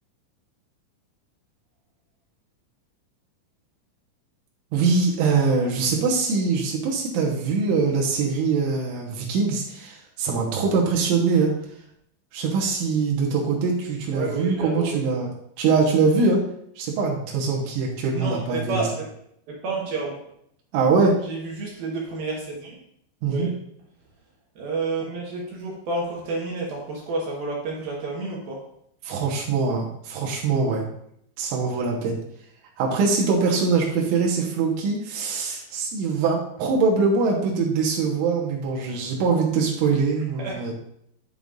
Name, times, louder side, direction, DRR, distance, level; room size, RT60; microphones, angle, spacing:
voice 1, 4.7-11.5 12.3-15.3 15.6-16.4 16.8-18.8 20.7-21.1 23.2-23.5 29.0-30.9 31.4-32.2 32.8-40.7, right 4 dB, 90° right, -2 dB, 3.6 m, -23 dB
voice 2, 14.1-15.0 18.1-19.1 19.5-20.2 21.2-22.8 23.2-23.5 24.6-28.6 40.4-40.6, right 3 dB, 65° right, -3 dB, 2.7 m, -30 dB
11.0 x 6.7 x 2.5 m, 0.72 s
omnidirectional pair, 5.4 m